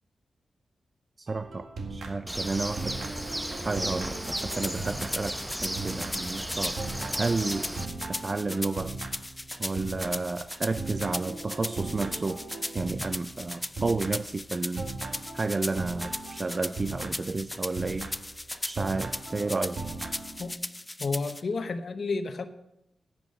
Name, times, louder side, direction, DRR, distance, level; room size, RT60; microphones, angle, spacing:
voice 1, 1.2-3.0 3.6-6.8 7.2-7.7 8.1-8.9 9.6-12.4 12.7-14.9 15.3-18.1 18.6-19.8, right 3 dB, 40° right, 12 dB, 0.5 m, -31 dB
sound 1, 1.3-2.5 2.8-20.5, right 3 dB, 75° right, 1.6 m, -39 dB
Bird, 2.3-7.9, right 1 dB, 10° right, 0.8 m, -35 dB
sound 2, 4.2-21.4, left 1 dB, 20° left, 0.3 m, -38 dB
voice 2, 21.0-22.4, left 4 dB, 60° left, 9 dB, 1.0 m, -31 dB
10.5 x 9.1 x 5.4 m, 0.85 s
cardioid pair, 55°, 0 cm